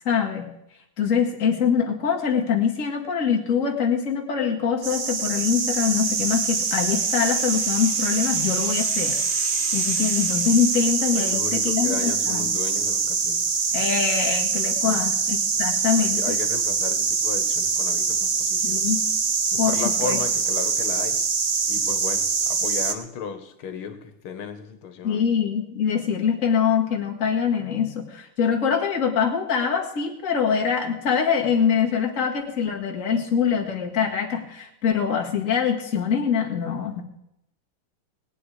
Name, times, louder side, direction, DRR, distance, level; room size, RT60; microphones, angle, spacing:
voice 1, 0.1-0.5 1.0-9.2 9.7-12.5 13.7-16.4 18.6-19.0 19.6-20.2 25.0-37.0, left 7 dB, 40° left, 1 dB, 2.1 m, -24 dB
sound 1, 4.8-22.9, right 5 dB, 90° right, 0.4 m, -24 dB
sound 2, 5.6-11.5, equal, 30° right, 2.3 m, -38 dB
voice 2, 11.1-13.6 14.7-15.1 16.0-18.8 19.5-21.2 21.7-25.2, left 6 dB, 80° left, 9 dB, 2.2 m, -35 dB
20.0 x 9.1 x 4.9 m, 0.82 s
omnidirectional pair, 2.3 m